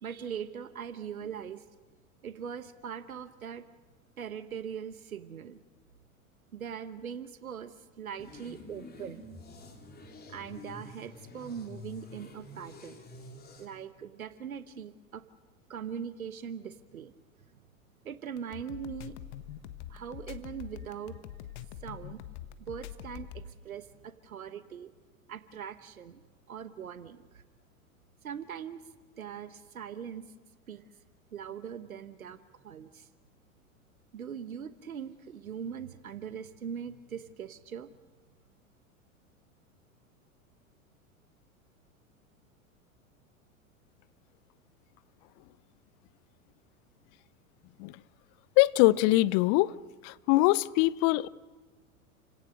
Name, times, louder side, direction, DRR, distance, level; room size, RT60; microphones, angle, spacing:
voice 1, 0.0-1.6 2.2-3.7 4.2-5.6 6.5-9.2 10.3-13.0 13.6-15.2 15.7-17.1 18.0-19.2 19.9-21.2 21.8-22.2 22.6-24.9 25.3-26.2 26.5-27.4 28.2-28.8 29.2-30.3 30.7-30.8 31.3-32.4 32.6-33.1 34.1-37.9, right 8 dB, 80° right, 1.2 m, -41 dB
sound 1, 8.2-13.7, left 2 dB, 20° left, 3.9 m, -48 dB
sound 2, 18.4-23.5, left 11 dB, 55° left, 1.5 m, -44 dB
voice 2, 48.6-49.7 50.0-51.3, left 19 dB, 40° left, 0.6 m, -23 dB
29.5 x 17.5 x 6.5 m
figure-of-eight pair, 90°, 41 cm